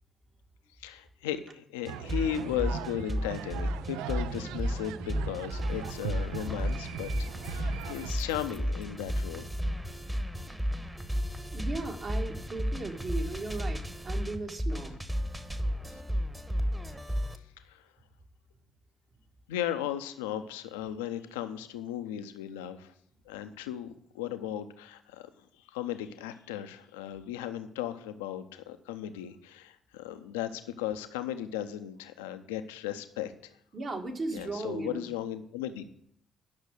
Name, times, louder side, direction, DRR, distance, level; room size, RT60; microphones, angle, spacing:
voice 1, 0.8-9.5 15.9-16.0 17.6-17.8 19.5-22.9 23.3-25.3 25.7-33.5 34.3-35.8, left 10 dB, 80° left, 10 dB, 0.6 m, -36 dB
sound 1, 1.9-17.4, equal, 15° right, 1.2 m, -33 dB
sound 2, 1.9-8.1, right 12 dB, 70° right, 0.3 m, -40 dB
sound 3, 5.7-6.1 6.5-6.9 7.4-8.9, left 5 dB, 30° left, 0.7 m, -46 dB
voice 2, 11.5-15.0 33.7-35.1, right 3 dB, 45° right, 3 dB, 1.6 m, -36 dB
10.5 x 6.3 x 6.5 m, 0.67 s
figure-of-eight pair, 45°, 0 cm